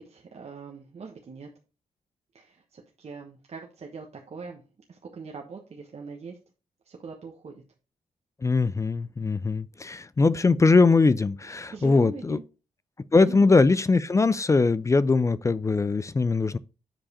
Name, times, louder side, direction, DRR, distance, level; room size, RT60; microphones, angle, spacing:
voice 1, 0.0-1.5 2.3-4.6 4.9-6.4 6.9-7.6 11.7-12.4 13.2-13.6, right 4 dB, 50° right, 1.2 m, -42 dB
voice 2, 8.4-12.4 13.1-16.6, left 3 dB, 20° left, 0.3 m, -21 dB
7.4 x 5.0 x 4.2 m
cardioid pair, 105°, 14 cm